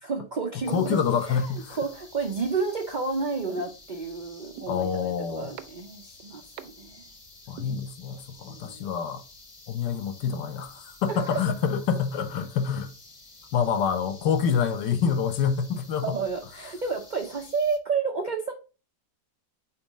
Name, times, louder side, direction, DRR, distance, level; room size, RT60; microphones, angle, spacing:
voice 1, 0.1-1.0 1.3-7.1 8.5-8.9 11.1-11.4 16.0-18.5, right 4 dB, 90° right, 0.4 m, -31 dB
sound 1, 0.6-17.8, left 2 dB, 25° left, 0.7 m, -51 dB
voice 2, 0.7-1.8 4.7-5.5 7.5-9.2 9.7-12.9 13.5-16.2, left 7 dB, 80° left, 1.3 m, -27 dB
sound 2, 3.6-3.7 4.6-4.7 5.6-5.7 6.6-6.7 7.6-7.7, right 9 dB, 70° right, 1.1 m, -39 dB
4.4 x 4.2 x 5.0 m
omnidirectional pair, 1.8 m